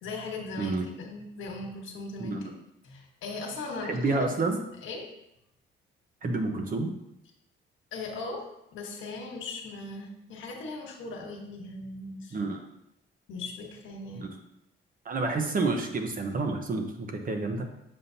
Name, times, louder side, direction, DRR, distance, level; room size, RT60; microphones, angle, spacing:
voice 1, 0.0-2.5 2.8-4.3 4.8-5.0 7.9-8.5 8.7-12.4 13.3-14.3, left 3 dB, 80° left, 2 dB, 1.4 m, -38 dB
voice 2, 3.9-4.6 6.2-6.9 12.3-12.6 14.1-14.4 15.0-17.6, right 3 dB, 45° right, 4 dB, 1.0 m, -29 dB
7.4 x 5.4 x 2.8 m, 0.83 s
cardioid pair, 90°, 20 cm